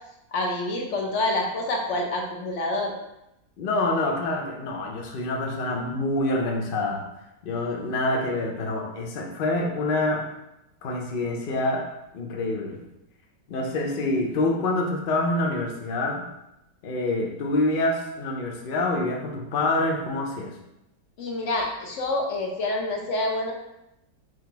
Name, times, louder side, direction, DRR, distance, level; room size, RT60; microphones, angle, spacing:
voice 1, 0.3-2.9 21.2-23.5, left 2 dB, 55° left, 0 dB, 0.9 m, -27 dB
voice 2, 3.6-7.0 7.4-10.2 10.8-11.8 12.1-12.8 13.5-16.2 16.8-20.5, left 2 dB, 80° left, 0 dB, 0.4 m, -26 dB
3.8 x 3.1 x 4.5 m, 0.86 s
omnidirectional pair, 1.9 m